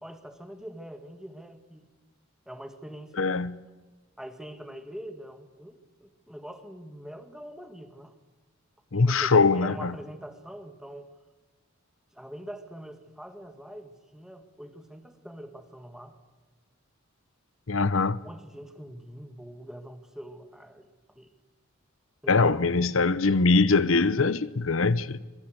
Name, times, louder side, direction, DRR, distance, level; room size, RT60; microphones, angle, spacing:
voice 1, 0.0-1.9 2.5-3.4 4.2-8.1 8.9-11.1 12.1-16.2 18.2-21.3 22.2-23.0, equal, 5° right, 1.9 m, -43 dB
voice 2, 3.2-3.5 8.9-9.9 17.7-18.2 22.3-25.2, left 4 dB, 70° left, 0.9 m, -22 dB
25.5 x 23.0 x 8.0 m
head